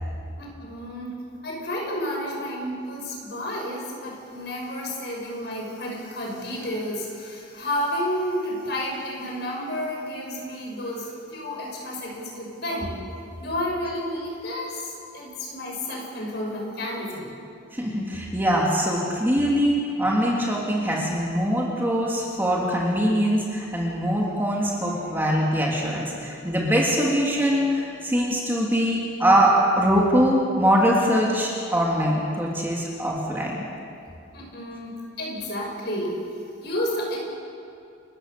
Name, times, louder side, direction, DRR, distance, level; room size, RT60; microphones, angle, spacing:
voice 1, 0.4-1.1 1.4-13.0 13.4-17.3 34.3-36.3 36.6-37.2, equal, 60° left, -1 dB, 6.1 m, -31 dB
voice 2, 17.7-33.7, equal, 10° right, -3 dB, 3.1 m, -22 dB
29.0 x 15.0 x 6.9 m, 2.5 s
head